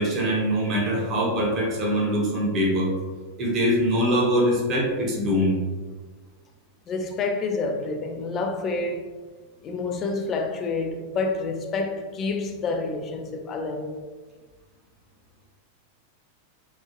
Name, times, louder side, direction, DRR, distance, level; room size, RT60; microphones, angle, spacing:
voice 1, 0.0-2.9 3.4-5.6, equal, 30° right, 0.7 m, -23 dB
voice 2, 6.9-9.1 9.6-14.0, left 3 dB, 30° left, 0.3 m, -28 dB
2.9 x 2.1 x 2.4 m
figure-of-eight pair, 90°, 0 cm